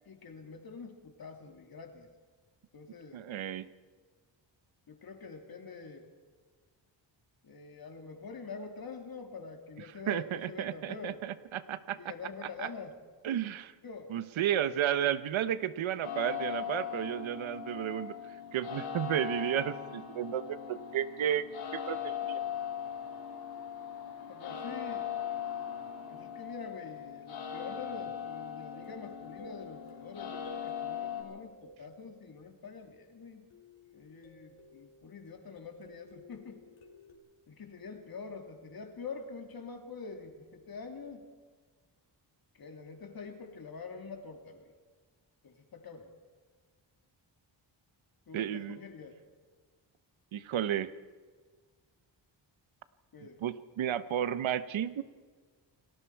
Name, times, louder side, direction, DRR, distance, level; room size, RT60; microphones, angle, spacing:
voice 1, 0.1-2.1 2.7-3.2 4.9-6.1 7.4-11.2 12.0-13.0 13.8-14.1 24.3-25.1 26.1-33.5 33.9-36.6 37.5-41.3 42.5-44.7 45.4-46.1 48.3-49.2 53.1-53.4, left 5 dB, 50° left, 4 dB, 2.8 m, -46 dB
voice 2, 3.1-3.7 10.1-12.0 12.4-12.7 13.2-13.7 14.1-18.1 18.5-21.5 21.7-22.4 48.3-48.8 50.3-50.9 53.4-55.0, right 10 dB, 90° right, 14 dB, 1.0 m, -32 dB
sound 1, 16.0-31.2, left 8 dB, 90° left, 7.9 m, -39 dB
sound 2, 28.7-33.0 33.5-37.1, left 1 dB, 70° left, 4.3 m, -55 dB
29.0 x 19.0 x 4.7 m, 1.5 s
wide cardioid pair, 145°, 46 cm